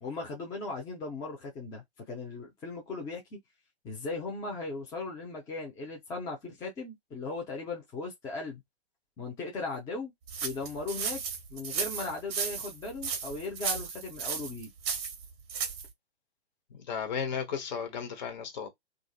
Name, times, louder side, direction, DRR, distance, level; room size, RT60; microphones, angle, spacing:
voice 1, 0.0-3.4 3.8-8.6 9.2-10.1 10.4-11.2 11.5-14.7, left 3 dB, 10° left, 0.6 m, -38 dB
sound 1, 10.3-15.9, right 6 dB, 25° right, 0.9 m, -34 dB
voice 2, 16.7-18.7, left 6 dB, 45° left, 1.1 m, -34 dB
2.6 x 2.5 x 2.3 m
figure-of-eight pair, 130°, 33 cm